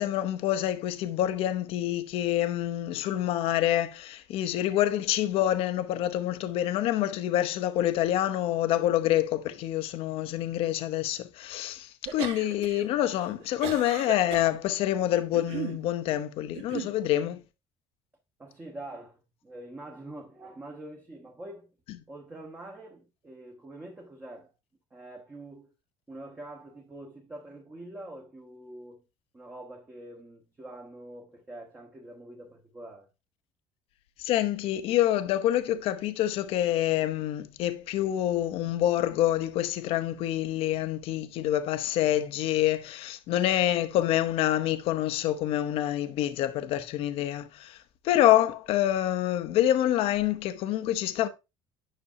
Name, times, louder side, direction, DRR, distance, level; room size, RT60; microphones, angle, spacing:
voice 1, 0.0-17.4 34.2-47.8 48.0-51.3, left 12 dB, 55° left, 0.8 m, -27 dB
sound 1, 12.0-12.8 13.2-14.5 15.1-15.8 16.5-16.9, right 9 dB, 65° right, 1.5 m, -36 dB
voice 2, 18.4-21.7 22.1-24.5 24.9-25.7 26.1-29.0 29.3-33.1, right 1 dB, 15° right, 1.2 m, -45 dB
9.9 x 6.1 x 2.7 m
cardioid pair, 165°, 11 cm